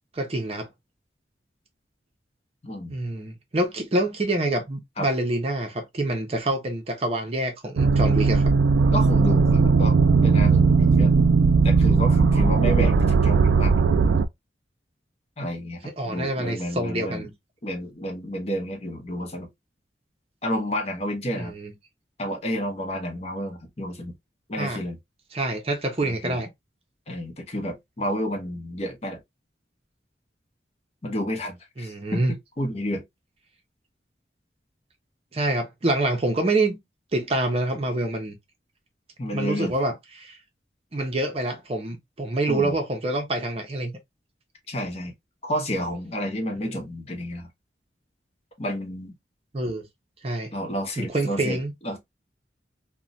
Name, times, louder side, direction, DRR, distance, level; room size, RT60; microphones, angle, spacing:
voice 1, 0.1-0.7 2.9-8.5 16.0-17.3 21.3-21.7 24.6-24.8 25.3-26.5 31.8-32.3 35.3-36.8 37.1-38.4 39.3-40.4 40.9-44.0 46.6-46.8 49.5-49.9 50.2-50.5 51.0-51.7, right 2 dB, 35° right, 0.6 m, -26 dB
voice 2, 2.6-2.9 5.0-5.1 8.9-10.0 10.2-11.1 11.6-13.7 15.4-17.3 17.6-19.5 20.4-21.5 22.2-24.1 24.5-25.0 26.0-26.4 27.1-29.2 31.0-32.2 32.6-33.0 39.2-39.7 42.5-42.7 44.7-45.1 45.4-47.5 48.6-49.1 50.5-52.0, equal, 35° left, 0.7 m, -30 dB
sound 1, 7.8-14.2, right 4 dB, 80° right, 0.3 m, -18 dB
2.9 x 2.1 x 2.5 m
head